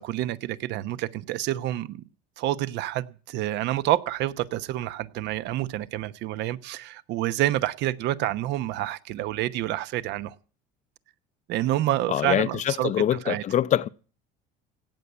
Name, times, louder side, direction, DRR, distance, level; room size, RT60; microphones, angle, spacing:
voice 1, 0.0-2.0 2.4-10.3 11.5-13.4, right 14 dB, 60° right, 1.0 m, -28 dB
voice 2, 12.1-13.9, left 11 dB, 40° left, 0.6 m, -24 dB
17.0 x 7.0 x 9.5 m
cardioid pair, 130°, 20 cm